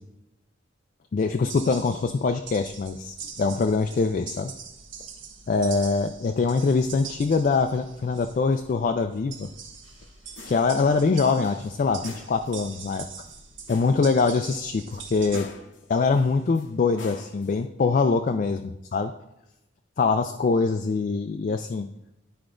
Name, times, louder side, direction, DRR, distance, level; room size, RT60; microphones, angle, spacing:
voice 1, 1.1-4.5 5.5-9.5 10.5-13.1 13.7-15.5 15.9-18.6 18.9-19.1 20.0-21.9, left 4 dB, 45° left, 6 dB, 0.3 m, -23 dB
sound 1, 1.2-15.4, right 6 dB, 75° right, 1.1 m, -43 dB
sound 2, 9.8-11.0 11.4-12.5 13.2-14.0 14.4-14.5 14.9-16.7 17.0-17.6, left 3 dB, 65° left, 0.7 m, -45 dB
11.5 x 4.7 x 2.5 m, 0.87 s
head